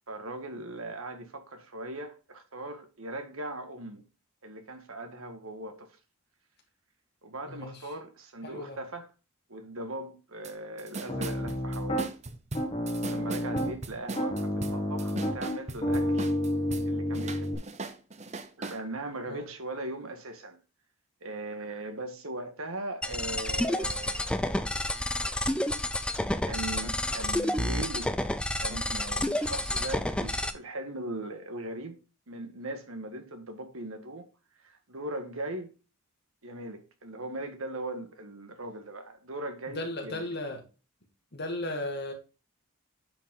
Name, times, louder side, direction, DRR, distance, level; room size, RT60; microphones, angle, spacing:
voice 1, 0.1-4.0 4.4-6.0 7.2-9.1 9.5-12.1 13.0-16.3 16.9-17.6 18.6-20.6 21.2-24.6 26.5-28.1 28.6-32.0 32.3-34.2 34.6-35.7 36.4-40.3, right 1 dB, 75° right, 1.7 m, -39 dB
voice 2, 7.5-7.8 8.4-8.8 19.3-19.5 39.7-40.6 41.3-42.1, left 1 dB, 50° left, 2.2 m, -35 dB
sound 1, 10.4-10.5 10.8-16.9 17.1-18.8, right 3 dB, 30° right, 0.7 m, -38 dB
Piano, 11.1-12.1 12.5-13.8 14.2-17.6, equal, 25° left, 2.1 m, -30 dB
sound 2, 23.0-30.5, left 1 dB, 5° left, 0.4 m, -30 dB
9.1 x 5.4 x 3.8 m
head